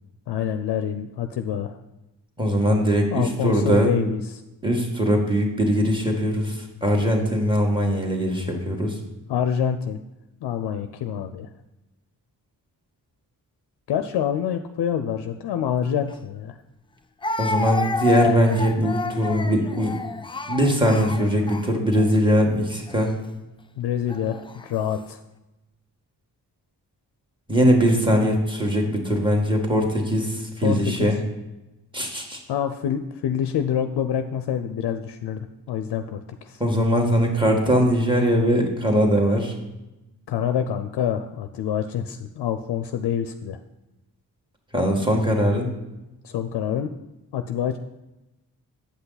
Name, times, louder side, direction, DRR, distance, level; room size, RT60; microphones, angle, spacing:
voice 1, 0.3-1.7 3.1-4.4 9.3-10.0 10.4-11.5 13.9-16.5 23.8-25.2 30.6-31.1 32.5-36.6 40.3-43.6 46.2-46.9 47.3-47.8, left 9 dB, 75° left, 9 dB, 0.5 m, -26 dB
voice 2, 2.4-3.9 4.6-8.9 17.4-20.0 20.5-23.1 27.5-31.2 31.9-32.4 36.6-39.5 44.7-45.7, equal, 10° right, 1 dB, 1.8 m, -21 dB
Speech, 16.1-16.2 17.2-22.1 22.9-23.1 24.1-24.7, left 3 dB, 15° left, 0.4 m, -29 dB
8.5 x 5.7 x 4.0 m, 0.99 s
cardioid pair, 55°, 41 cm